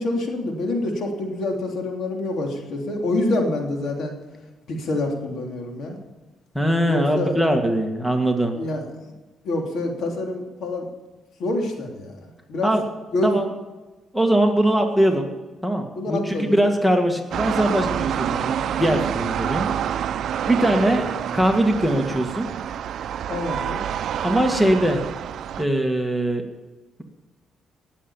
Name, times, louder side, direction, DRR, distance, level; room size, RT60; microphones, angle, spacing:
voice 1, 0.0-4.1 4.7-6.0 6.9-7.3 8.5-8.8 9.4-10.9 11.4-12.7 13.1-13.4 15.9-16.6 23.3-23.8, left 2 dB, 70° left, 2 dB, 3.2 m, -26 dB
voice 2, 6.5-8.5 12.6-12.9 13.2-13.5 14.1-15.3 15.6-19.7 20.5-22.5 24.2-25.0 25.6-26.4, right 1 dB, 5° left, 4 dB, 1.9 m, -21 dB
sound 1, 17.3-25.6, right 9 dB, 70° right, 0.5 m, -27 dB
18.5 x 7.7 x 7.2 m, 1.2 s
cardioid pair, 90°, 0 cm